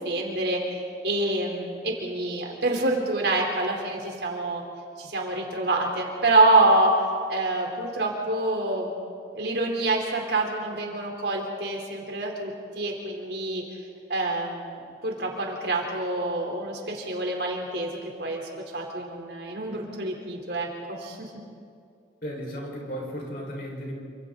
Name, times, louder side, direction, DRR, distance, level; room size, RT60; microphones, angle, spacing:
voice 1, 0.0-4.6 5.0-8.9 9.3-13.6 14.1-14.8 15.0-18.4 18.7-21.3, right 2 dB, 75° right, 0 dB, 3.9 m, -26 dB
voice 2, 22.2-23.9, equal, 55° left, -1 dB, 5.4 m, -35 dB
28.0 x 26.0 x 4.1 m, 2.3 s
head